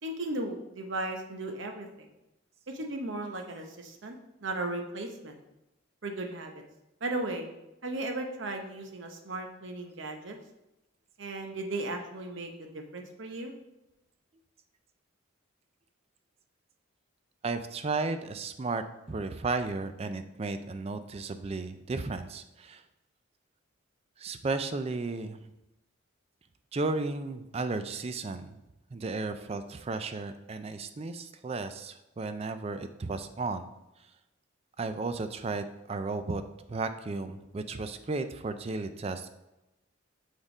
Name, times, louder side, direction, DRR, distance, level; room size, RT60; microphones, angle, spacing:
voice 1, 0.0-2.1 2.7-4.2 4.4-5.3 6.0-6.6 7.0-7.5 7.8-10.4 11.2-13.5, right 2 dB, 65° right, 4 dB, 0.8 m, -36 dB
voice 2, 17.4-22.8 24.2-25.5 26.7-28.6 28.9-33.7 34.8-36.4 36.7-39.3, right 3 dB, 30° right, 10 dB, 0.3 m, -34 dB
6.4 x 3.6 x 4.9 m, 0.95 s
head